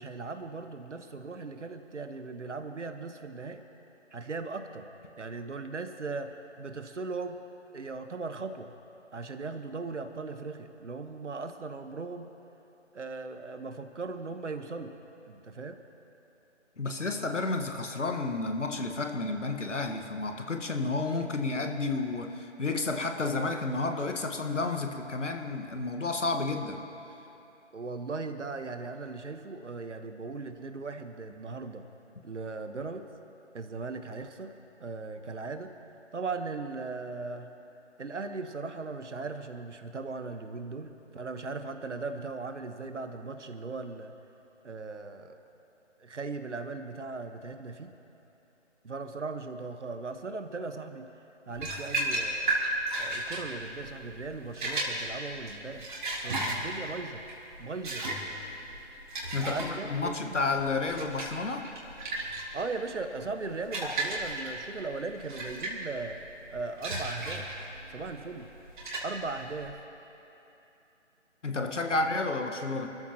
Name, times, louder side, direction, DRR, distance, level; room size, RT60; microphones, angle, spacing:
voice 1, 0.0-3.6 4.1-4.9 5.2-7.4 7.7-8.7 9.1-12.3 12.9-14.9 15.2-15.8 27.7-31.9 32.2-33.1 33.5-34.5 34.8-35.7 36.1-37.5 38.0-44.1 44.6-45.4 46.0-47.9 48.8-51.1 51.5-52.5 53.0-55.9 56.2-57.2 57.6-58.0 59.4-60.4 62.5-66.2 66.5-67.5 67.9-68.5 69.0-69.8 71.8-71.9, right 3 dB, 70° right, 7 dB, 1.4 m, -38 dB
voice 2, 16.8-26.8 59.3-61.7 71.4-72.9, left 3 dB, 75° left, 5 dB, 1.7 m, -31 dB
sound 1, 51.5-69.7, right 2 dB, 40° right, 3.5 m, -35 dB
27.5 x 14.0 x 3.0 m, 2.9 s
figure-of-eight pair, 160°, 37 cm